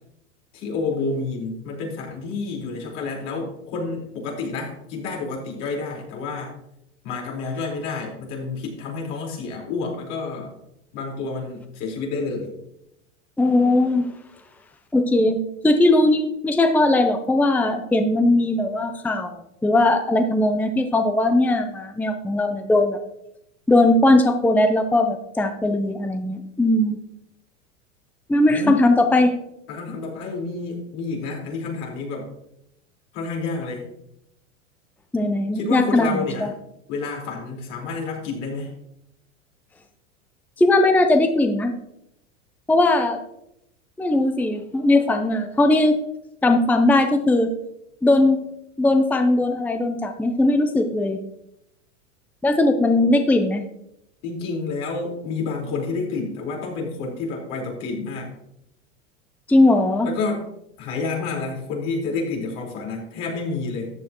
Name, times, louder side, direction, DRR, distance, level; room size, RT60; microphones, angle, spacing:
voice 1, 0.5-6.5 7.0-10.5 10.9-12.5 28.5-28.8 29.7-32.3 33.1-33.9 35.5-36.5 36.9-38.7 54.2-58.3 60.0-60.4 60.8-63.9, left 4 dB, 65° left, -2 dB, 4.6 m, -29 dB
voice 2, 13.4-14.1 14.9-15.4 15.6-19.3 19.6-23.0 23.7-27.0 28.3-29.4 35.1-36.5 40.6-41.7 42.7-43.2 44.0-46.0 46.4-47.5 48.0-48.4 48.8-51.2 52.4-53.6 59.5-60.1, left 2 dB, 5° left, 7 dB, 0.7 m, -19 dB
13.5 x 9.2 x 3.0 m, 0.82 s
hypercardioid pair, 115°, 38 cm